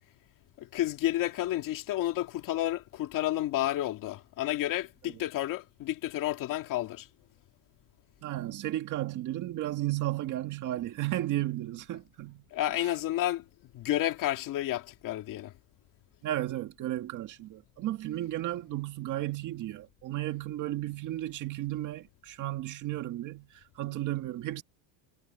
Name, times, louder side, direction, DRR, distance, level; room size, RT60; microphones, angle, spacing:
voice 1, 0.6-7.1 12.5-13.4 13.7-15.5, left 14 dB, 45° left, 2.2 m, -31 dB
voice 2, 8.2-12.4 12.8-12.9 16.2-24.6, right 15 dB, 40° right, 1.8 m, -34 dB
cardioid pair, 165°, 45 cm